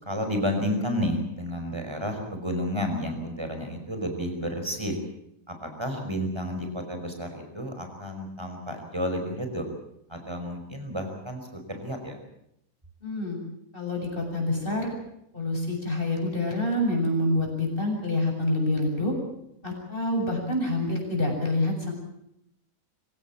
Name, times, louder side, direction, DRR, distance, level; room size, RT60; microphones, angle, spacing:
voice 1, 0.0-5.0 5.5-9.7 10.1-12.2, equal, 15° right, 5 dB, 5.4 m, -31 dB
voice 2, 13.0-13.4 13.7-14.9 15.3-19.1 19.6-21.9, left 1 dB, 30° left, 1 dB, 7.9 m, -27 dB
26.0 x 17.0 x 8.8 m, 0.78 s
omnidirectional pair, 1.7 m